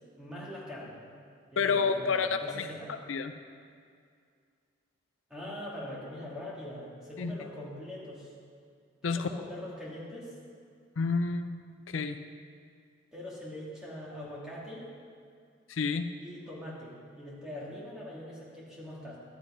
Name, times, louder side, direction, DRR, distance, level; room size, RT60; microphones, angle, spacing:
voice 1, 0.2-1.0 1.5-3.0 5.3-8.3 9.0-10.3 13.1-14.9 16.2-19.2, left 1 dB, 5° right, -7 dB, 2.4 m, -42 dB
voice 2, 1.6-2.7 3.1-3.3 7.2-7.3 9.0-9.3 11.0-11.5 11.9-12.2 15.7-16.0, left 5 dB, 80° left, 9 dB, 0.5 m, -29 dB
11.5 x 8.6 x 5.0 m, 2.2 s
head